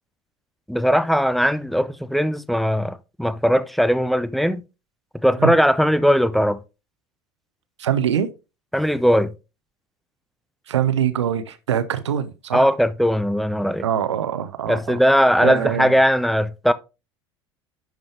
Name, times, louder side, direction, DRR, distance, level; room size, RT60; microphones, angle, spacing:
voice 1, 0.7-4.6 5.2-6.6 8.7-9.3 12.5-13.8 14.7-16.7, equal, ahead, 0.6 m, -19 dB
voice 2, 7.8-8.3 10.7-12.7 13.8-15.0 15.4-16.0, right 9 dB, 75° right, 0.9 m, -23 dB
10.5 x 5.3 x 3.3 m
figure-of-eight pair, 70°, 15 cm